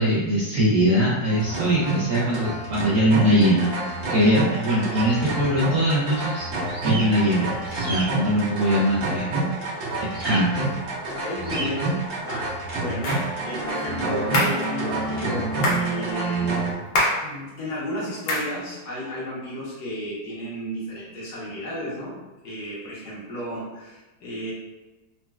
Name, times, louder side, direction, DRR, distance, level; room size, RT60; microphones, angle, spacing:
voice 1, 0.0-3.7 4.1-6.5 6.8-7.5 7.8-9.3 10.2-10.7, equal, 80° right, -7 dB, 0.7 m, -21 dB
sound 1, 1.3-16.7, right 2 dB, 60° right, 1.3 m, -28 dB
sound 2, 6.7-7.1 7.6-8.0 10.1-10.4 11.4-11.7, right 2 dB, 45° right, 0.6 m, -33 dB
voice 2, 11.1-13.2 13.4-16.6 17.2-22.2 22.4-24.5, equal, 65° left, -6 dB, 1.3 m, -33 dB
sound 3, 13.0-13.3 14.3-14.6 15.6-15.9 16.9-17.3 18.3-18.5, left 1 dB, 80° left, 1.5 m, -23 dB
4.0 x 2.1 x 2.2 m, 1.1 s
omnidirectional pair, 2.0 m